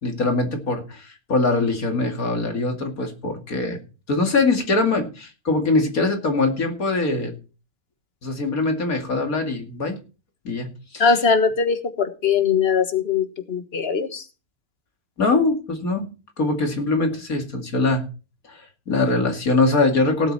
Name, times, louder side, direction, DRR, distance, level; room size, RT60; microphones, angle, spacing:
voice 1, 0.0-3.8 4.1-7.3 8.2-10.0 10.4-11.2 15.2-16.1 16.4-18.0 18.5-20.3, left 3 dB, 70° left, 4 dB, 2.8 m, -22 dB
voice 2, 11.0-14.2, left 5 dB, 45° left, 8 dB, 1.7 m, -21 dB
17.5 x 8.1 x 4.2 m, 0.34 s
omnidirectional pair, 1.6 m